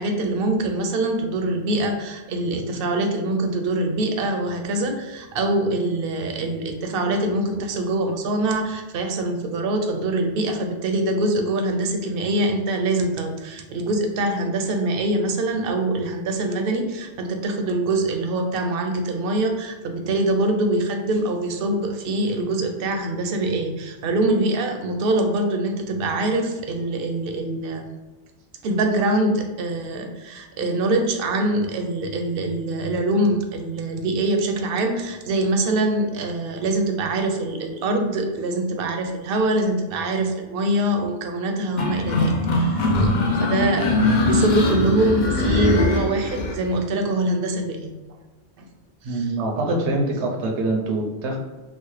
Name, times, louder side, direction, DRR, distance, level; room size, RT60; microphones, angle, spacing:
voice 1, 0.0-27.9 28.6-42.9 43.4-43.9 44.2-47.9 49.1-49.2, right 1 dB, 65° right, 4 dB, 0.7 m, -24 dB
sound 1, 41.8-46.6, left 2 dB, 55° left, 0.6 m, -21 dB
voice 2, 49.0-51.4, right 2 dB, 90° right, 1 dB, 1.0 m, -24 dB
4.1 x 2.0 x 3.1 m, 1.2 s
omnidirectional pair, 1.1 m